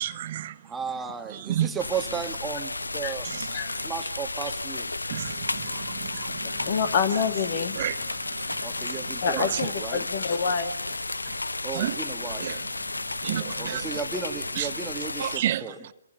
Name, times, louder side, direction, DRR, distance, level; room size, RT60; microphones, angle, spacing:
voice 1, 0.0-0.6 1.3-1.7 3.2-3.6 5.1-6.7 7.8-9.0 9.4-9.7 11.2-11.4 11.7-12.0 12.4-12.6 13.2-13.9 14.6-14.7 15.2-15.7, right 12 dB, 40° right, 0.8 m, -31 dB
voice 2, 0.6-3.3 3.8-4.9 8.6-10.1 11.6-12.5 13.6-15.8, right 6 dB, 10° right, 1.7 m, -34 dB
sound 1, 1.8-15.4, left 2 dB, 75° left, 0.9 m, -33 dB
voice 3, 6.7-7.8 9.2-10.8 13.3-13.6, left 6 dB, 40° left, 2.3 m, -27 dB
28.5 x 23.0 x 7.0 m
figure-of-eight pair, 130°, 0 cm